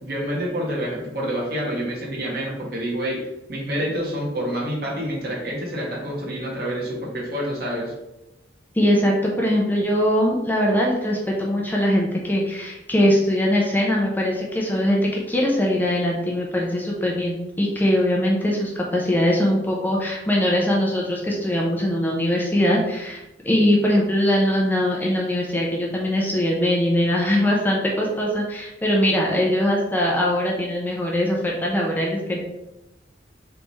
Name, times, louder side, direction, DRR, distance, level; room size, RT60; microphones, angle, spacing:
voice 1, 0.0-3.2 3.5-7.9, equal, 55° right, -3 dB, 1.3 m, -27 dB
voice 2, 8.7-32.4, left 1 dB, 10° left, -2 dB, 0.6 m, -21 dB
3.5 x 3.3 x 4.0 m, 0.95 s
head